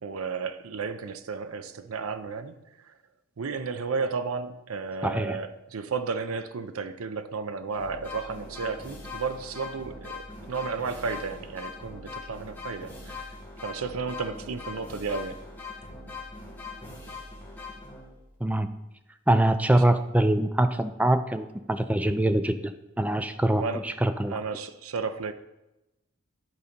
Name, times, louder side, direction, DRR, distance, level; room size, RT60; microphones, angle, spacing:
voice 1, 0.0-2.6 3.4-13.3 13.6-15.4 19.7-19.8 23.5-23.8 24.2-25.3, right 4 dB, 85° right, 0.6 m, -33 dB
voice 2, 5.0-5.4 18.4-18.7 19.3-24.4, right 1 dB, 5° right, 0.4 m, -24 dB
sound 1, 7.7-18.3, left 3 dB, 10° left, 1.6 m, -41 dB
11.0 x 4.1 x 5.1 m
head